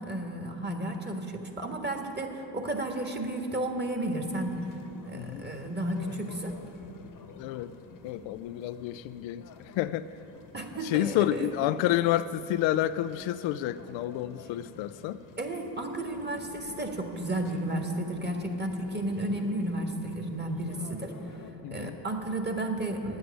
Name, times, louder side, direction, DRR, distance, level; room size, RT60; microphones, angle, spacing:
voice 1, 0.0-4.5 5.0-6.6 10.5-11.5 15.4-21.1 21.7-23.2, right 1 dB, 20° right, 3 dB, 1.6 m, -33 dB
sound 1, 4.3-21.5, left 4 dB, 40° left, 1.1 m, -49 dB
voice 2, 5.1-5.5 7.4-7.7 8.0-10.1 10.8-15.2 21.6-22.0, left 13 dB, 70° left, 12 dB, 0.5 m, -29 dB
9.4 x 8.0 x 9.4 m, 2.9 s
supercardioid pair, 75°, 48 cm